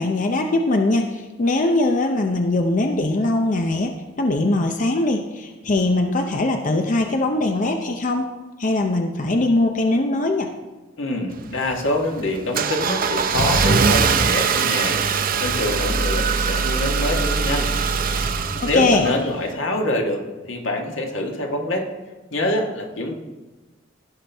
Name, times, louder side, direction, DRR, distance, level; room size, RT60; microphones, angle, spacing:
voice 1, 0.0-3.9 4.2-8.3 8.6-10.5 18.7-19.1, left 2 dB, 40° left, 4 dB, 0.6 m, -21 dB
voice 2, 11.0-17.7 18.6-21.9 22.3-23.2, left 1 dB, 90° left, 2 dB, 1.6 m, -25 dB
Car / Engine starting, 11.3-19.5, right 5 dB, 50° right, 0.6 m, -22 dB
16.5 x 5.8 x 3.4 m, 1.2 s
head